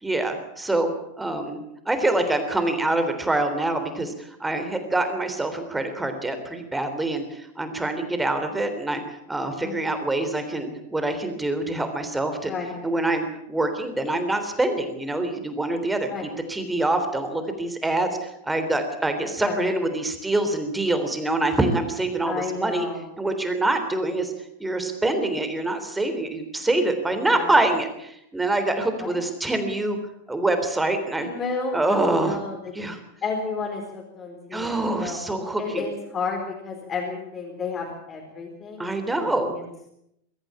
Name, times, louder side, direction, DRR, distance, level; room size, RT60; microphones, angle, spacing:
voice 1, 0.0-0.9 1.2-1.6 1.9-12.5 12.8-16.1 16.5-22.9 23.2-24.3 24.6-30.0 30.3-31.3 31.7-32.4 32.7-33.0 34.5-35.9 38.8-39.5, right 2 dB, 5° right, 7 dB, 3.4 m, -25 dB
voice 2, 9.6-10.0 12.4-12.8 16.1-16.3 19.4-19.6 22.3-23.1 27.3-27.5 29.0-29.2 31.2-32.7 33.2-35.2 35.6-39.6, left 4 dB, 25° left, 0 dB, 4.2 m, -32 dB
22.5 x 14.0 x 8.7 m, 0.79 s
figure-of-eight pair, 90°, 0 cm